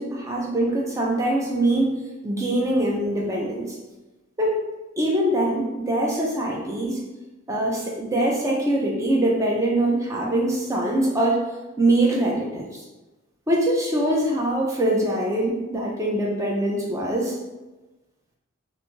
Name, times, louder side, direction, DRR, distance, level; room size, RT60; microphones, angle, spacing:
voice 1, 0.0-3.8 4.4-4.6 5.0-7.0 7.5-11.4 11.8-12.8 13.5-17.4, right 1 dB, 15° right, -2 dB, 0.4 m, -23 dB
2.5 x 2.4 x 3.0 m, 1.1 s
head